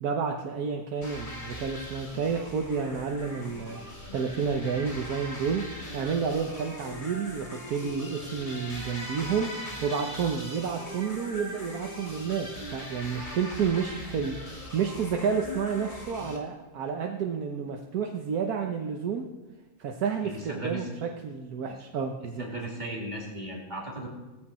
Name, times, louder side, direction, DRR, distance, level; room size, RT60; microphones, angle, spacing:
voice 1, 0.0-5.7 5.9-19.3 19.8-22.4, right 6 dB, 85° right, 2 dB, 1.5 m, -30 dB
sound 1, 1.0-16.4, left 1 dB, 30° left, 2.9 m, -40 dB
voice 2, 20.2-20.9 22.4-24.1, right 1 dB, 30° right, -3 dB, 3.0 m, -36 dB
18.0 x 15.0 x 4.3 m, 1.1 s
omnidirectional pair, 1.6 m